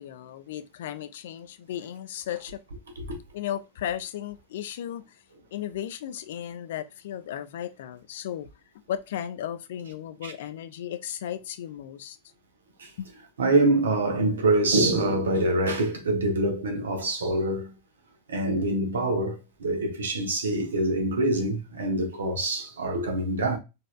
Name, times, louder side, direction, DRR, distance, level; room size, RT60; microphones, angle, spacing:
voice 1, 0.0-2.6 3.3-5.2 5.5-8.5 8.9-12.2 13.0-13.1, left 10 dB, 55° left, 0.3 m, -35 dB
voice 2, 13.4-17.7 18.3-23.6, right 2 dB, 65° right, 0.8 m, -25 dB
4.0 x 2.5 x 2.2 m
figure-of-eight pair, 90°, 0 cm